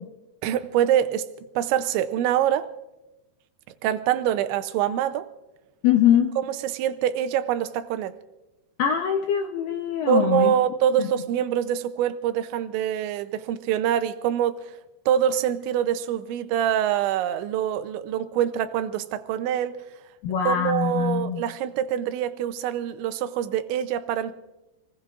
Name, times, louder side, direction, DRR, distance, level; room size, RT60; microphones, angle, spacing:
voice 1, 0.4-1.2 1.6-2.7 3.8-5.3 6.4-8.2 10.1-14.6 15.1-19.8 20.4-24.3, right 10 dB, 90° right, 10 dB, 3.1 m, -25 dB
voice 2, 5.8-6.3 8.8-10.5 11.0-11.1 20.2-21.4, left 9 dB, 75° left, 3 dB, 2.1 m, -22 dB
28.0 x 20.0 x 2.5 m, 1.0 s
omnidirectional pair, 5.1 m